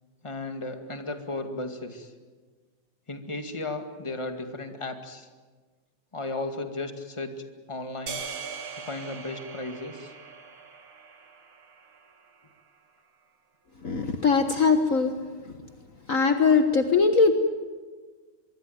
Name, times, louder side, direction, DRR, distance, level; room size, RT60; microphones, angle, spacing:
voice 1, 0.2-2.1 3.1-5.3 6.1-7.3 7.7-8.2 8.8-10.1, left 2 dB, 15° left, 6 dB, 1.4 m, -35 dB
sound 1, 8.1-12.4, right 5 dB, 45° right, 2.9 m, -41 dB
voice 2, 13.8-15.1 15.5-15.6 16.1-17.3, left 4 dB, 65° left, 6 dB, 0.7 m, -21 dB
24.5 x 23.0 x 9.3 m, 1.4 s
omnidirectional pair, 3.5 m